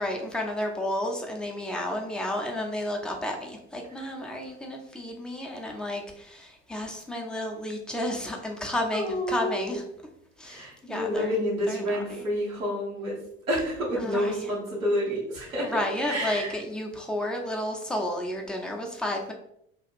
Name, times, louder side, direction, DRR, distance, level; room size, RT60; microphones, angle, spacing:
voice 1, 0.0-9.8 10.4-12.3 13.9-14.5 15.6-19.3, left 1 dB, ahead, 1 dB, 0.4 m, -32 dB
voice 2, 8.9-9.8 10.4-13.2 13.5-16.6, equal, 90° right, -7 dB, 1.0 m, -29 dB
2.8 x 2.3 x 3.4 m, 0.74 s
figure-of-eight pair, 65°, 40 cm